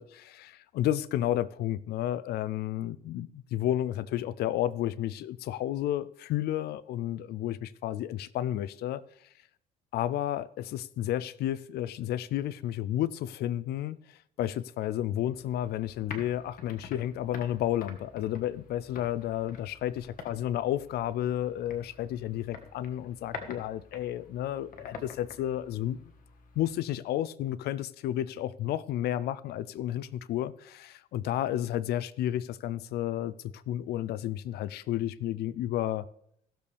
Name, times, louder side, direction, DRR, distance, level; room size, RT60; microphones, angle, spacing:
voice 1, 0.0-9.0 9.9-26.1 26.6-36.1, left 12 dB, 70° left, 0.5 m, -32 dB
sound 1, 15.3-26.7, left 5 dB, 55° left, 1.5 m, -47 dB
16.5 x 7.0 x 3.4 m
cardioid pair, 110°, 17 cm